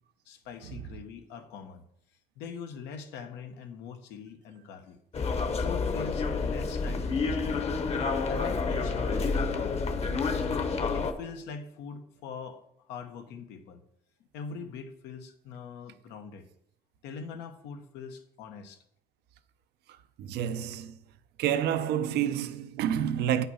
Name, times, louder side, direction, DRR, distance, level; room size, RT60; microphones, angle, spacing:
voice 1, 0.2-1.8 2.4-5.0 5.6-7.7 8.3-10.4 10.9-13.8 14.3-16.5 17.0-18.8, left 6 dB, 90° left, 1.2 m, -43 dB
sound 1, 5.1-11.1, left 4 dB, 40° left, 1.0 m, -29 dB
voice 2, 20.2-21.0 21.4-23.5, right 10 dB, 75° right, 0.6 m, -28 dB
8.5 x 5.8 x 5.5 m
cardioid pair, 110°, 17 cm